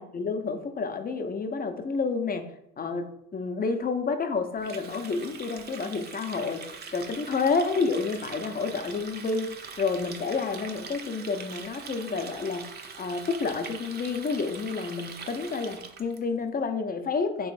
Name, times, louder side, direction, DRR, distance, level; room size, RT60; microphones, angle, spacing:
voice 1, 0.0-2.5 2.8-17.5, left 4 dB, 30° left, 7 dB, 0.6 m, -30 dB
Water tap faucet, 4.6-16.2, right 5 dB, 30° right, 0.5 m, -42 dB
3.2 x 3.0 x 4.7 m, 0.78 s
supercardioid pair, 90°, 32 cm